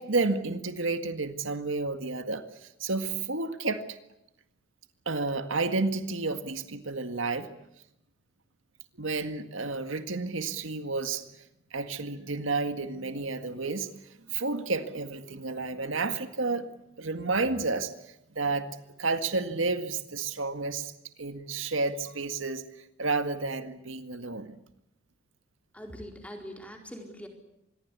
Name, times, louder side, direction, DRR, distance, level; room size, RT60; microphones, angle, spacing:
voice 1, 0.0-3.8 5.1-7.5 8.9-11.3 11.7-13.9 14.3-16.7 17.0-18.7 19.0-20.9 21.2-24.6, right 3 dB, 90° right, 9 dB, 1.9 m, -31 dB
voice 2, 25.7-27.3, equal, 5° left, 3 dB, 4.4 m, -42 dB
26.0 x 22.0 x 8.3 m, 0.83 s
head